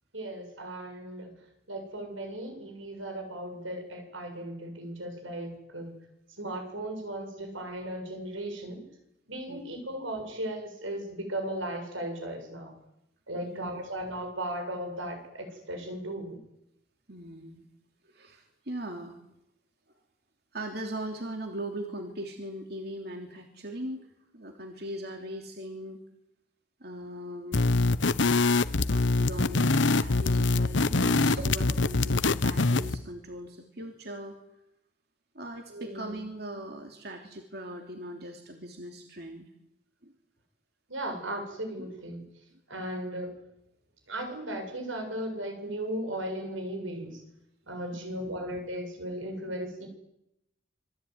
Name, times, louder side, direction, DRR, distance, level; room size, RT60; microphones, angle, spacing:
voice 1, 0.1-1.3 1.7-5.9 6.4-8.9 9.3-12.7 13.3-16.4 35.7-36.2 40.9-42.2 42.7-43.4 44.1-47.2 47.7-49.9, right 1 dB, 85° right, 5 dB, 7.4 m, -36 dB
voice 2, 9.5-9.8 13.4-13.9 17.1-17.7 18.0-19.1 19.9-20.0 20.5-24.1 24.3-26.0 26.8-27.7 28.9-34.3 35.3-39.5 40.0-40.1 41.8-41.9 47.9-48.4, right 1 dB, 55° right, 3 dB, 3.1 m, -40 dB
sound 1, 27.5-33.0, left 3 dB, 70° left, 0.9 m, -24 dB
27.0 x 22.0 x 9.6 m, 0.85 s
head